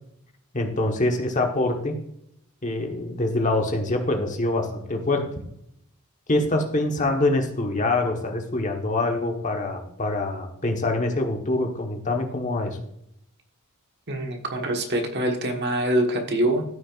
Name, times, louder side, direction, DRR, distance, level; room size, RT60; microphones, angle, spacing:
voice 1, 0.5-1.9 2.6-5.2 6.3-12.8, left 2 dB, 35° left, 3 dB, 1.3 m, -25 dB
voice 2, 14.1-16.6, right 1 dB, 50° right, 3 dB, 1.4 m, -24 dB
14.0 x 6.2 x 2.5 m, 0.76 s
head